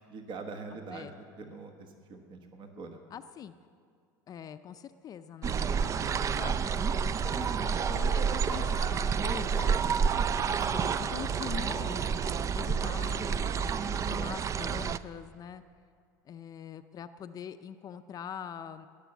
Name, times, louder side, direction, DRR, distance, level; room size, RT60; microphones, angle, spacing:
voice 1, 0.0-3.0 10.1-10.4, right 4 dB, 50° right, 5 dB, 1.3 m, -44 dB
voice 2, 0.7-1.1 3.1-3.5 4.3-9.7 10.7-12.1 12.5-15.6 16.3-18.9, left 8 dB, 35° left, 9 dB, 0.5 m, -43 dB
sound 1, 5.4-15.0, right 6 dB, 30° right, 0.4 m, -29 dB
sound 2, 6.9-12.3 12.7-12.8, right 2 dB, 75° right, 4.4 m, -45 dB
19.0 x 6.8 x 7.1 m, 2.3 s
hypercardioid pair, 80°, 11 cm